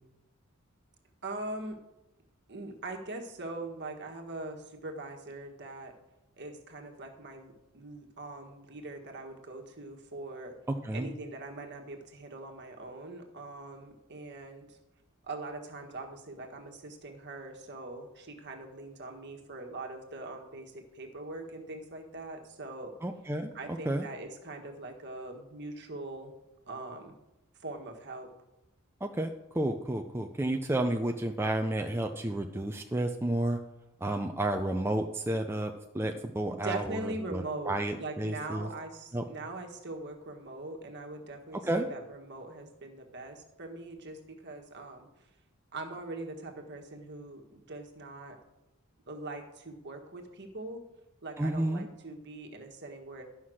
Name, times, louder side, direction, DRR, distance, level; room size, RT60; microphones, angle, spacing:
voice 1, 1.2-1.8 2.5-5.9 6.4-10.5 10.9-14.8 15.3-22.9 23.5-26.3 26.7-27.1 27.6-28.3 36.5-45.3 45.7-48.4 49.1-50.8 51.2-53.2, right 2 dB, 55° right, 2 dB, 1.5 m, -42 dB
voice 2, 23.0-23.5 23.9-24.1 29.0-33.6 34.0-38.7 39.1-39.2 41.5-41.9 51.4-51.9, right 1 dB, 10° right, 3 dB, 0.5 m, -31 dB
11.5 x 5.8 x 6.3 m, 0.95 s
head